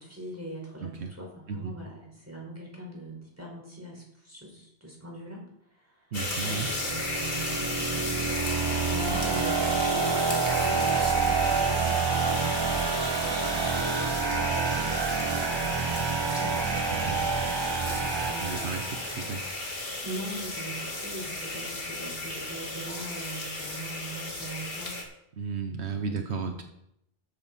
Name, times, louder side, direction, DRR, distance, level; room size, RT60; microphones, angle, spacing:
voice 1, 0.0-6.1 6.4-8.5 8.9-18.6 20.0-24.9 25.9-26.6, right 1 dB, 15° right, -2 dB, 4.6 m, -41 dB
voice 2, 0.8-1.1 1.5-1.8 6.1-6.7 16.9-17.2 18.4-19.5 25.3-26.6, right 5 dB, 75° right, 6 dB, 1.2 m, -34 dB
sound 1, 6.1-25.0, left 2 dB, 55° left, 2.3 m, -34 dB
sound 2, 6.5-19.4, right 5 dB, 40° right, 0.4 m, -28 dB
sound 3, 7.1-14.5, right 1 dB, 55° right, 4.0 m, -46 dB
13.0 x 9.9 x 4.1 m, 0.77 s
omnidirectional pair, 1.1 m